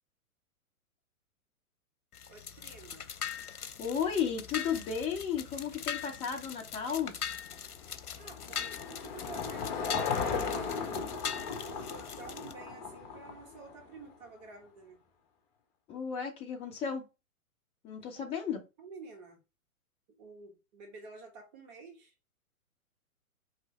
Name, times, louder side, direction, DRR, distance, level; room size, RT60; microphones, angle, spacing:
sound 1, 2.1-12.5, left 7 dB, 85° left, 0.7 m, -41 dB
voice 1, 2.3-3.1 8.2-9.7 10.0-10.8 11.6-15.0 18.0-18.2 18.8-19.4 20.2-22.1, right 4 dB, 30° right, 1.6 m, -50 dB
voice 2, 3.8-7.2 15.9-17.0 17.8-18.6, left 7 dB, 15° left, 0.8 m, -34 dB
Car passing by / Engine, 7.5-13.9, left 5 dB, 30° left, 1.2 m, -36 dB
4.8 x 3.3 x 3.2 m
figure-of-eight pair, 125°, 44 cm